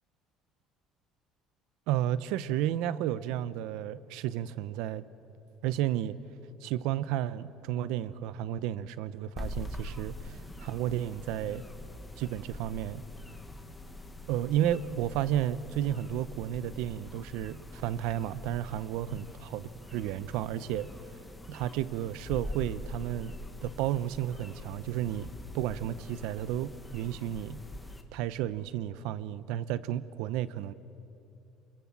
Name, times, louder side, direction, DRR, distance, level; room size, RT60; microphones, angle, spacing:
voice 1, 1.9-5.0 5.6-6.2 6.6-11.6 12.2-13.0 14.3-19.3 19.5-19.6 19.9-20.9 21.1-21.2 21.5-23.3 23.6-25.3 25.5-27.6 28.1-30.7, right 11 dB, 75° right, 16 dB, 0.8 m, -32 dB
sound 1, 9.4-28.0, left 1 dB, 10° left, 1.5 m, -44 dB
28.5 x 22.5 x 7.5 m, 2.9 s
cardioid pair, 165°, 0 cm